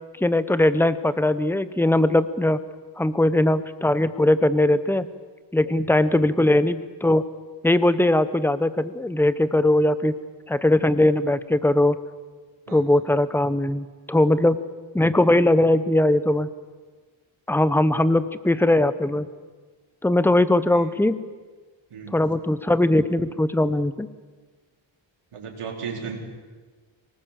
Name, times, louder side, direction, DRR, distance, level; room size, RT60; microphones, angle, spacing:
voice 1, 0.2-2.6 3.0-5.1 5.5-7.2 7.6-10.1 10.5-12.0 12.7-14.6 14.9-16.5 17.5-19.3 20.0-21.1 22.1-24.1, left 1 dB, 5° left, 14 dB, 0.7 m, -20 dB
voice 2, 5.7-6.1 12.7-13.0 20.7-20.8 21.9-22.2 25.3-26.2, right 6 dB, 85° right, 1 dB, 4.1 m, -36 dB
24.0 x 19.5 x 7.4 m, 1.4 s
wide cardioid pair, 145°, 50 cm